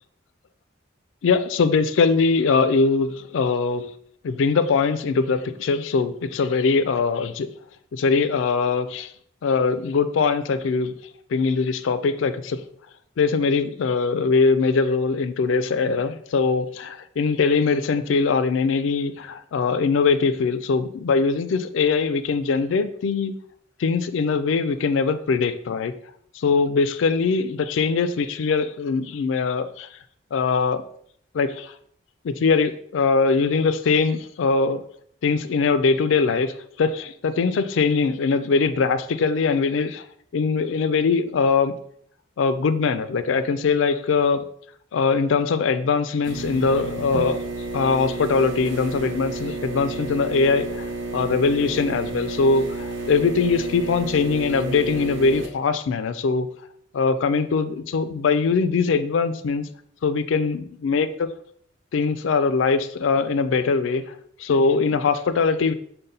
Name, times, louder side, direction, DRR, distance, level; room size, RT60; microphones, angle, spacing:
voice 1, 1.2-3.8 4.2-7.5 7.9-9.1 9.4-10.9 11.3-12.6 13.2-23.4 23.8-25.9 26.4-29.9 30.3-30.8 31.3-31.7 32.2-34.8 35.2-40.0 40.3-41.7 42.4-44.4 44.9-47.4 47.7-50.8 51.1-56.5 56.9-59.7 60.0-61.3 61.9-64.0 64.4-65.7, left 4 dB, 85° left, 12 dB, 0.4 m, -22 dB
sound 1, 46.2-55.5, right 2 dB, 75° right, 0.8 m, -31 dB
5.3 x 2.2 x 3.9 m, 0.65 s
head